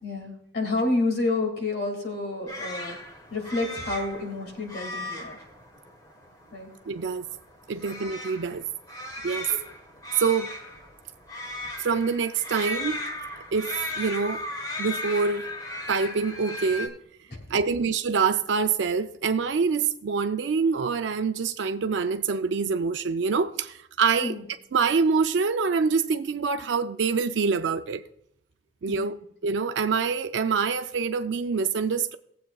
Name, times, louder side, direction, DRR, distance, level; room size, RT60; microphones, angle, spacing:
voice 1, 0.0-3.0 3.3-5.4 6.5-6.7 9.5-9.6 17.3-17.6 24.2-24.4 28.9-29.0, left 2 dB, 60° left, 2.2 m, -29 dB
sound 1, 2.5-16.9, left 1 dB, 20° left, 1.3 m, -37 dB
voice 2, 6.9-7.3 7.7-8.6 9.2-9.5 10.2-10.5 11.8-13.0 13.5-14.4 14.8-15.4 15.9-17.0 17.5-24.3 24.7-28.0 28.8-29.2 29.4-32.2, right 5 dB, 85° right, 0.4 m, -25 dB
18.5 x 7.7 x 2.3 m
head